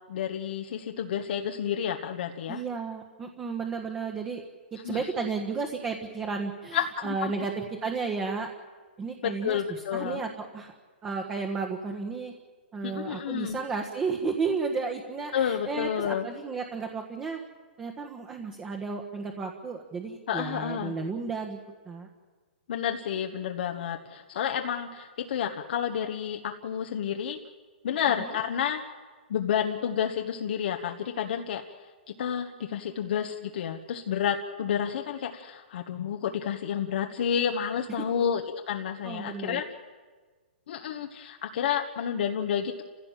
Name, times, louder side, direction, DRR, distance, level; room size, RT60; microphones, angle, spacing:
voice 1, 0.1-2.6 4.8-5.0 6.7-7.3 9.2-10.2 12.8-13.6 15.3-16.3 20.3-21.0 22.7-27.4 27.8-28.8 29.3-31.6 32.2-39.6 40.7-42.8, left 8 dB, 60° left, 3 dB, 1.3 m, -30 dB
voice 2, 2.5-4.4 4.8-8.5 9.0-10.7 11.0-12.3 12.7-17.4 17.8-21.6 21.8-22.1 28.2-28.4 38.2-38.3 39.0-39.6, right 4 dB, 15° right, 3 dB, 1.5 m, -33 dB
29.0 x 16.0 x 7.4 m, 1.4 s
hypercardioid pair, 145°, 6 cm